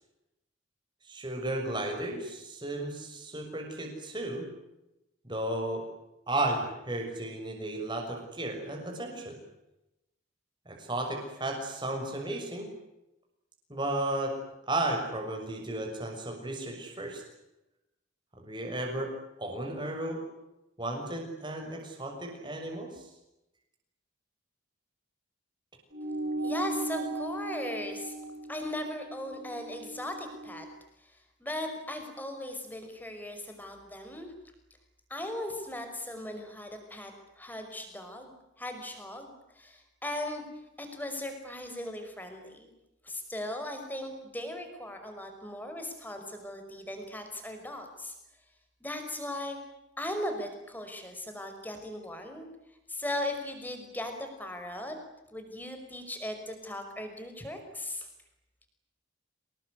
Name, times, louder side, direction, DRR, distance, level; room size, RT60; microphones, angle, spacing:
voice 1, 1.1-4.5 5.2-5.8 6.3-9.4 10.7-12.7 13.7-14.3 14.7-17.2 18.4-19.1 19.4-20.2 20.8-23.1, right 1 dB, 20° right, 2 dB, 6.6 m, -34 dB
sound 1, 25.9-30.7, right 2 dB, 45° right, 6.5 m, -37 dB
voice 2, 26.4-28.2 28.5-30.7 31.0-34.3 35.1-40.5 40.8-42.7 43.0-48.1 48.8-49.6 50.0-52.5 52.9-55.0 55.3-58.1, left 1 dB, 10° left, 5 dB, 5.5 m, -38 dB
28.0 x 20.0 x 9.7 m, 0.91 s
head